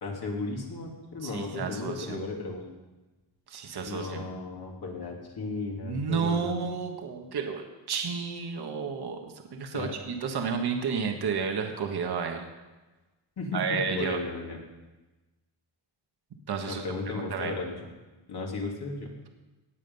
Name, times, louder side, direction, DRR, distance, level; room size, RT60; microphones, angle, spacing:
voice 1, 0.0-2.7 3.8-6.5 9.7-10.0 13.4-14.6 16.7-17.8 18.3-19.1, left 3 dB, 55° left, 0 dB, 2.8 m, -35 dB
voice 2, 1.2-2.2 3.5-4.2 5.8-12.5 13.5-14.2 16.5-16.8 17.1-17.5, right 5 dB, 60° right, 4 dB, 1.5 m, -31 dB
18.5 x 7.5 x 5.5 m, 1.1 s
wide cardioid pair, 135°, 45 cm